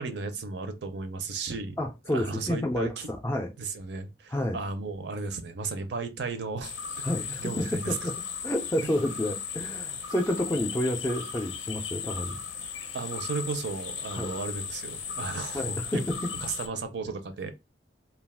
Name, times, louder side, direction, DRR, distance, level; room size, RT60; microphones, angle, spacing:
voice 1, 0.0-1.8 2.1-2.9 3.6-7.0 7.4-7.9 12.9-16.0 16.3-17.5, right 4 dB, 65° right, 0.5 m, -34 dB
voice 2, 1.8-3.5 4.3-4.6 7.0-8.2 8.4-12.4 14.1-14.3 15.5-16.2, left 1 dB, 15° left, 0.3 m, -30 dB
sound 1, 6.6-16.7, left 7 dB, 85° left, 0.5 m, -37 dB
2.4 x 2.3 x 3.4 m
head